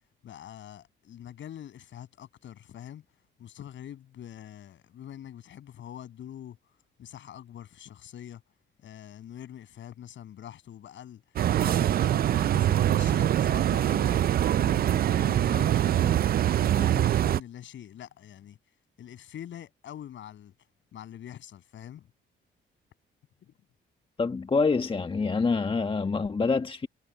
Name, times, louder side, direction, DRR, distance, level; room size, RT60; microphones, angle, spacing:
voice 1, 0.2-3.0 3.4-6.6 7.0-8.4 8.8-18.6 19.0-20.5 20.9-22.1 23.4-23.5, left 10 dB, 70° left, 7.0 m, -44 dB
sound 1, 11.4-17.4, right 11 dB, 50° right, 0.4 m, -24 dB
voice 2, 24.2-26.9, left 4 dB, 25° left, 1.2 m, -26 dB
cardioid pair, 90°, 20 cm